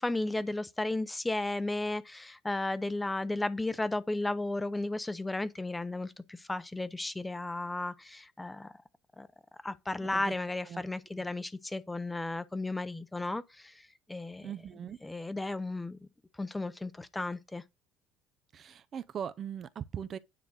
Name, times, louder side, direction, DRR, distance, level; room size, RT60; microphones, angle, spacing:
voice 1, 0.0-8.7 9.2-9.3 9.6-14.5 15.0-16.1 16.4-17.6, left 2 dB, 10° left, 0.6 m, -34 dB
voice 2, 10.0-10.3 10.7-10.8 14.4-15.0 18.5-20.2, right 8 dB, 40° right, 0.5 m, -40 dB
9.5 x 3.9 x 6.2 m
cardioid pair, 135°, 0 cm